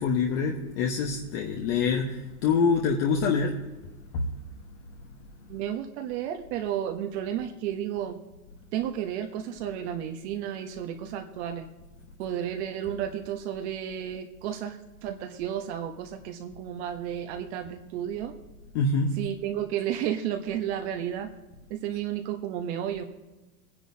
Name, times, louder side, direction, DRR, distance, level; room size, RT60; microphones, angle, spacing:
voice 1, 0.0-3.6 4.1-4.2 18.7-19.2, left 5 dB, 45° left, 1 dB, 1.3 m, -25 dB
voice 2, 5.5-8.2 8.7-11.7 12.2-18.3 19.2-21.3 21.7-23.0, right 10 dB, 45° right, 4 dB, 1.1 m, -32 dB
22.0 x 10.0 x 2.8 m, 1.1 s
supercardioid pair, 150°, 45 cm